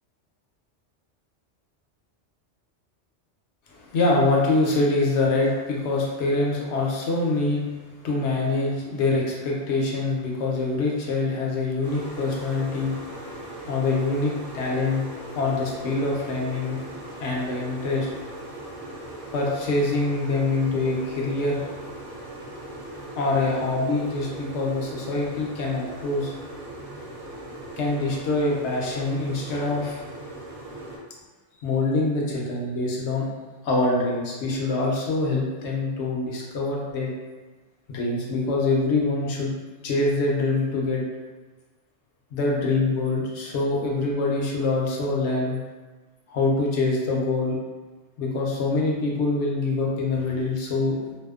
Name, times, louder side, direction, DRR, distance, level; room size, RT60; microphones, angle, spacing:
voice 1, 3.7-7.6 8.0-15.0 15.3-16.9 17.2-18.1 19.3-21.7 23.2-26.3 27.8-30.0 31.6-33.2 33.6-37.1 37.9-39.5 39.8-41.0 42.3-45.6 46.3-47.5 48.2-51.2, left 3 dB, 70° left, -3 dB, 0.8 m, -25 dB
sound 1, 11.8-31.0, right 1 dB, 45° right, 0.5 m, -39 dB
2.7 x 2.0 x 2.2 m, 1.3 s
omnidirectional pair, 1.2 m